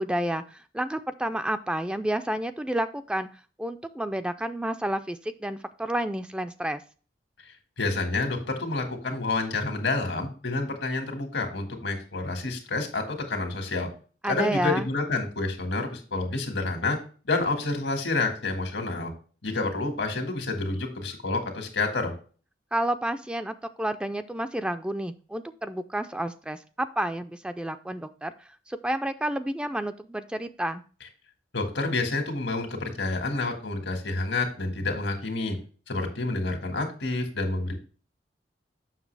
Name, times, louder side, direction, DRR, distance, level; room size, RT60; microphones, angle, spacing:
voice 1, 0.0-3.3 3.6-6.8 14.2-14.9 22.7-28.3 28.7-30.8, right 1 dB, 5° right, 9 dB, 0.3 m, -30 dB
voice 2, 7.8-13.9 14.2-17.0 17.3-19.1 19.4-22.1 31.5-35.6 35.9-37.7, left 3 dB, 90° left, 5 dB, 1.8 m, -29 dB
7.2 x 6.2 x 3.3 m, 0.38 s
head